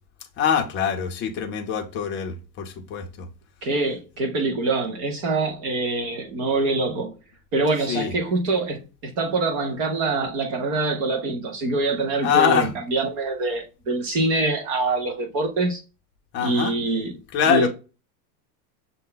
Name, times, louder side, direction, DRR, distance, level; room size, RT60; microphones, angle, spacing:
voice 1, 0.4-3.3 7.9-8.1 12.2-12.7 16.3-16.7 17.3-17.7, left 8 dB, 25° left, 0.6 m, -23 dB
voice 2, 3.6-7.1 7.5-15.8 16.4-17.2 17.5-17.7, right 3 dB, 25° right, 0.3 m, -24 dB
6.4 x 2.2 x 3.8 m
supercardioid pair, 150°, 50 cm